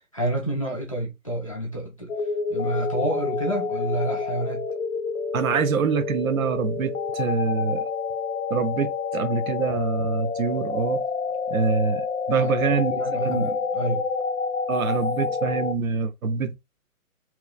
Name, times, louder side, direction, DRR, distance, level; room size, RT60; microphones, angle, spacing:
voice 1, 0.0-2.1 2.5-4.7 12.3-14.1, right 1 dB, 25° left, 0.4 m, -29 dB
sound 1, 2.1-15.7, left 5 dB, 80° left, 0.7 m, -28 dB
voice 2, 5.3-7.9 8.5-11.0 11.5-13.5 14.7-16.6, right 5 dB, 70° right, 0.7 m, -25 dB
2.9 x 2.3 x 2.2 m
hypercardioid pair, 155°, 43 cm